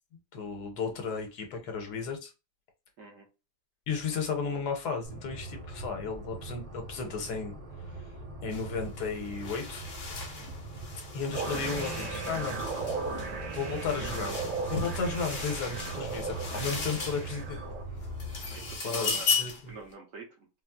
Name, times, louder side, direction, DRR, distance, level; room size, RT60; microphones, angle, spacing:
voice 1, 0.3-2.3 3.9-7.5 7.9-8.0 8.4-9.9 11.1-12.6 13.5-17.6 18.8-19.7, left 5 dB, 70° left, 1.4 m, -34 dB
sound 1, 5.0-18.8, right 2 dB, 35° right, 0.7 m, -42 dB
sound 2, 8.5-8.7 9.0-17.6 18.0-19.7, left 5 dB, 50° left, 0.8 m, -36 dB
sound 3, 11.3-17.8, right 4 dB, 75° right, 1.3 m, -36 dB
voice 2, 18.5-19.3 19.7-20.5, right 3 dB, 55° right, 1.1 m, -46 dB
4.1 x 2.0 x 2.2 m
omnidirectional pair, 1.8 m